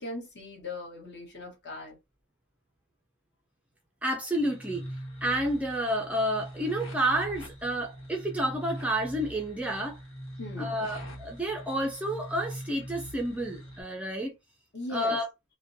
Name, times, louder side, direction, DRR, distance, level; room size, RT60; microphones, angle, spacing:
voice 1, 0.0-2.0 10.4-10.7 14.7-15.2, left 2 dB, 55° left, 1.2 m, -38 dB
voice 2, 4.0-4.8 5.2-10.0 10.6-14.3 14.9-15.3, right 1 dB, 5° right, 0.4 m, -30 dB
sound 1, 4.3-13.8, equal, 75° left, 1.2 m, -42 dB
2.5 x 2.1 x 2.5 m
head